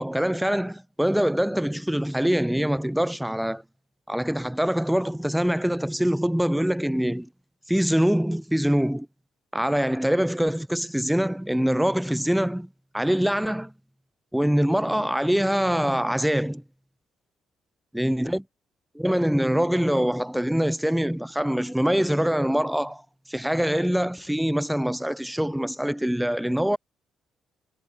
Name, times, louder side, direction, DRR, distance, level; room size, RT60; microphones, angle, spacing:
voice 1, 0.0-3.6 4.1-7.3 7.7-9.1 9.5-12.7 12.9-13.7 14.3-16.6 17.9-18.4 18.9-23.0 23.3-26.8, equal, 5° right, 3.3 m, -24 dB
cardioid pair, 80°, 0 cm